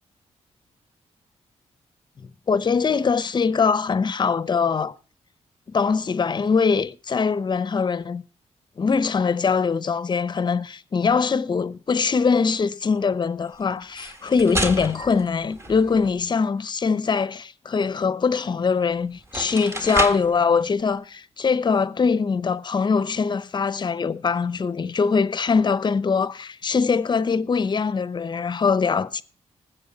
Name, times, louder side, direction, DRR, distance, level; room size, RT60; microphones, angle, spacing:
voice 1, 2.5-4.9 5.7-8.2 8.8-29.2, left 5 dB, 40° left, 0.7 m, -22 dB
sound 1, 13.8-16.2 18.7-18.8 19.2-20.4, right 1 dB, 20° right, 1.7 m, -30 dB
20.0 x 7.8 x 4.0 m
cardioid pair, 95°, 12 cm